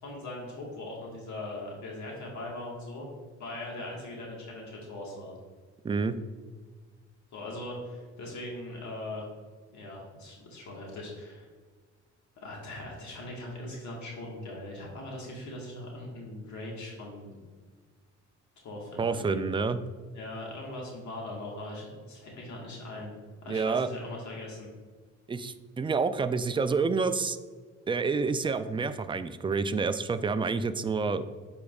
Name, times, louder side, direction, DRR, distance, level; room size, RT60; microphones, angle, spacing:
voice 1, 0.0-3.1 3.4-5.3 7.3-9.2 9.7-11.5 12.4-17.4 18.6-19.5 20.1-23.1 23.4-24.7, left 1 dB, 70° left, -2 dB, 1.6 m, -40 dB
voice 2, 5.8-6.1 19.0-19.8 23.5-23.9 25.3-27.4 27.9-31.2, right 4 dB, 20° right, 11 dB, 0.3 m, -28 dB
8.5 x 4.8 x 2.4 m, 1.5 s
cardioid pair, 90°, 30 cm